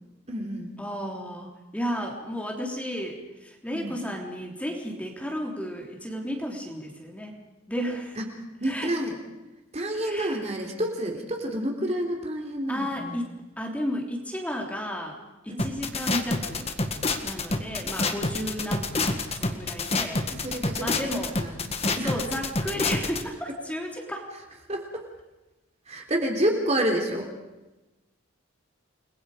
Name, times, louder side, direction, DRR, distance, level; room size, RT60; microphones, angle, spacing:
voice 1, 0.3-0.7 3.7-4.0 8.2-8.3 8.6-9.2 9.7-13.2 15.5-15.7 20.3-20.9 21.3-22.1 24.7-25.0 25.9-27.3, right 1 dB, 30° right, 2 dB, 3.6 m, -29 dB
voice 2, 0.8-7.3 7.7-8.2 8.6-8.9 10.0-10.4 12.7-13.3 13.6-15.2 15.4-16.7 17.2-20.2 20.8-21.4 22.0-24.3, equal, 5° left, 0 dB, 3.4 m, -33 dB
sound 1, 15.6-23.2, left 3 dB, 30° left, 1.8 m, -27 dB
30.0 x 21.5 x 5.1 m, 1.0 s
head